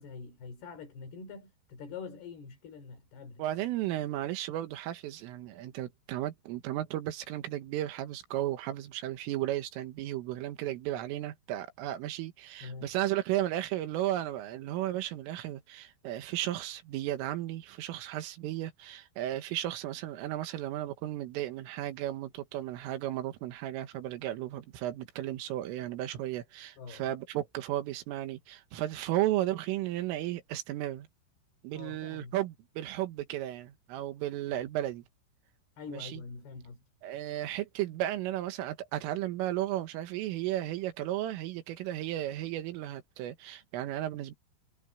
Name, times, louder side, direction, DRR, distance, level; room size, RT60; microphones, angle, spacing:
voice 1, 0.0-3.4 12.6-12.9 26.8-27.1 31.7-32.4 34.5-34.7 35.8-36.8, left 5 dB, 55° left, 5.7 m, -45 dB
voice 2, 3.4-31.1 31.6-35.0 35.9-36.2 37.0-44.4, right 13 dB, 80° right, 4.1 m, -34 dB
omnidirectional pair, 5.8 m